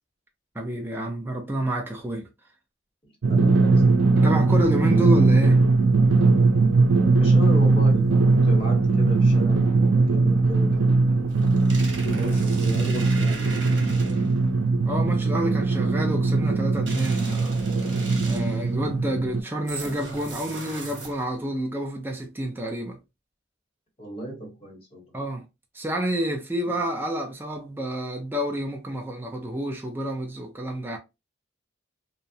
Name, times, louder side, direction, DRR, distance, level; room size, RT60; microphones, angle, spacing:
voice 1, 0.6-2.3 3.8-5.6 14.9-17.6 18.2-23.0 25.1-25.5 25.7-31.0, right 1 dB, 10° right, 0.4 m, -29 dB
Drum, 3.2-19.4, right 3 dB, 85° right, 0.5 m, -20 dB
voice 2, 3.3-4.0 7.1-8.1 8.4-11.6 12.0-14.2 24.0-25.1 26.6-26.7, equal, 30° left, 0.9 m, -35 dB
sound 1, 11.3-14.4 16.9-18.7 19.7-21.4, right 3 dB, 65° right, 1.0 m, -38 dB
2.6 x 2.0 x 2.6 m
head